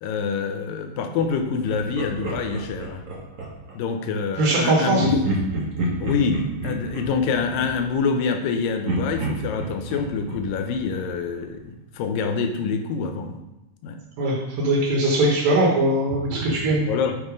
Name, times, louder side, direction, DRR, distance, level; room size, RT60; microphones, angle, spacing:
voice 1, 0.0-3.0 3.7-5.2 6.0-13.4 13.8-14.0 16.8-17.2, left 5 dB, 80° left, 6 dB, 2.4 m, -26 dB
Laughter, 1.7-3.8 5.0-8.5 8.8-11.6, right 2 dB, 45° right, 1.0 m, -30 dB
voice 2, 4.4-5.0 14.2-16.8, right 1 dB, 85° right, -3 dB, 3.2 m, -20 dB
7.4 x 4.8 x 5.1 m, 0.95 s
omnidirectional pair, 3.9 m